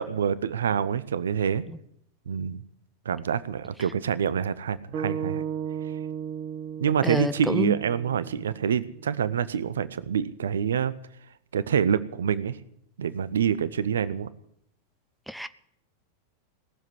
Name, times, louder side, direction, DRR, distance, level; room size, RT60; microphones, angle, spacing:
voice 1, 0.0-1.6 2.3-2.6 3.0-5.4 6.8-10.9 11.5-12.6 13.0-14.3, right 8 dB, 65° right, 0.7 m, -26 dB
sound 1, 4.9-9.2, right 8 dB, 40° right, 1.5 m, -35 dB
voice 2, 7.0-7.7 15.3-15.5, equal, ahead, 0.6 m, -28 dB
18.5 x 7.4 x 9.8 m
figure-of-eight pair, 90°, 0 cm